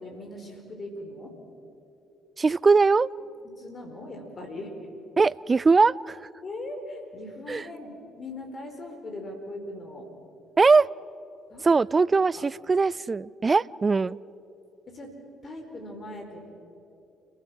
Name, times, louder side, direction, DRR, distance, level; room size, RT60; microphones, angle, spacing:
voice 1, 0.0-1.3 3.6-4.7 6.4-7.9 8.2-10.1 11.5-11.7 12.3-12.4 14.0-14.2 14.9-15.1 15.4-16.5, left 1 dB, 40° left, 3 dB, 4.8 m, -39 dB
voice 2, 2.4-3.1 5.2-6.2 7.5-7.6 10.6-10.9 11.6-14.2, right 4 dB, 30° right, 23 dB, 0.4 m, -21 dB
29.5 x 16.0 x 6.0 m, 2.8 s
hypercardioid pair, 50°, 0 cm